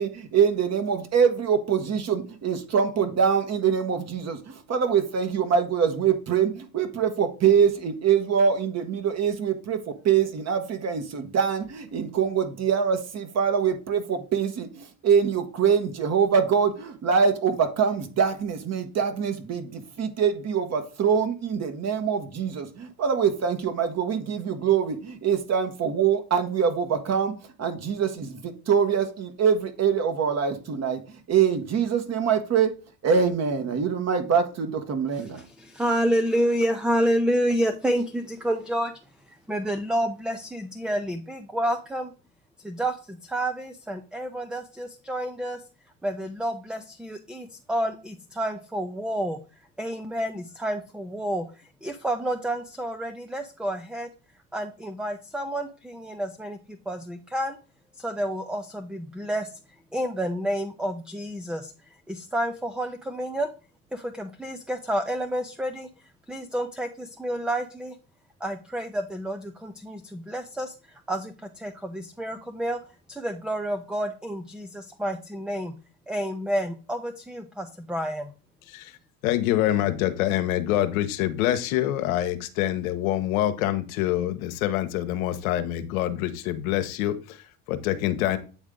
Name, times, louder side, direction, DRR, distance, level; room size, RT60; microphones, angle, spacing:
voice 1, 0.0-32.7 33.0-35.4, right 7 dB, 40° right, 8 dB, 1.4 m, -24 dB
voice 2, 35.1-38.9 39.3-42.1 42.6-45.6 46.0-49.4 49.8-51.5 51.8-54.1 54.5-57.6 58.0-59.5 59.9-61.7 62.1-63.5 63.9-65.9 66.3-68.0 68.4-72.8 73.1-75.7 76.1-78.3, equal, ahead, 7 dB, 0.4 m, -29 dB
voice 3, 78.7-79.0 79.2-88.4, left 13 dB, 80° left, 10 dB, 1.0 m, -26 dB
8.6 x 3.6 x 3.7 m, 0.35 s
supercardioid pair, 95°, 42 cm